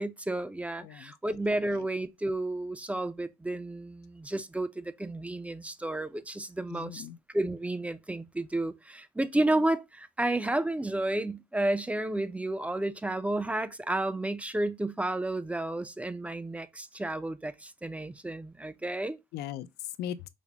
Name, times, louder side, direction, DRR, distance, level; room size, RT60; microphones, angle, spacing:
voice 1, 0.0-7.1 7.3-19.2, right 1 dB, 10° right, 0.4 m, -31 dB
voice 2, 0.8-1.4 1.7-1.9 6.7-7.2 19.3-20.3, left 11 dB, 75° left, 0.5 m, -39 dB
5.1 x 2.0 x 3.3 m
cardioid pair, 110°, 17 cm